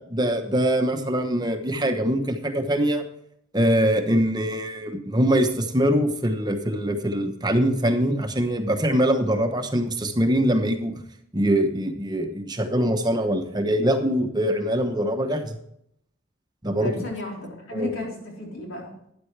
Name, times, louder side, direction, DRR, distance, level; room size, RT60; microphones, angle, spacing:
voice 1, 0.1-3.0 3.5-10.9 11.3-15.6 16.6-17.0 17.7-17.9, equal, 20° right, 5 dB, 1.0 m, -23 dB
voice 2, 16.8-18.9, left 2 dB, 90° left, -2 dB, 3.9 m, -34 dB
12.5 x 9.6 x 3.3 m, 0.72 s
head